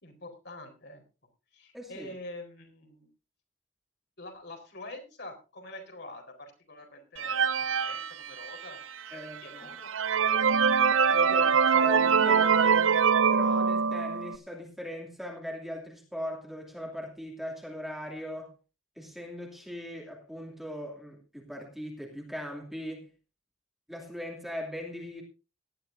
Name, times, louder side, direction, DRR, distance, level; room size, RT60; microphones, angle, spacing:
voice 1, 0.0-1.0 1.5-3.1 4.2-8.8 9.1-10.9 11.2-11.8 12.6-12.7, left 2 dB, 55° left, 3 dB, 4.3 m, -46 dB
voice 2, 1.7-2.1 9.1-9.8 10.9-12.9 13.3-18.5 19.0-23.1 23.9-25.2, equal, ahead, -1 dB, 2.7 m, -39 dB
sound 1, 7.2-8.8 9.4-9.5 9.8-14.4, right 6 dB, 75° right, 0.7 m, -24 dB
18.5 x 12.0 x 2.7 m, 0.31 s
head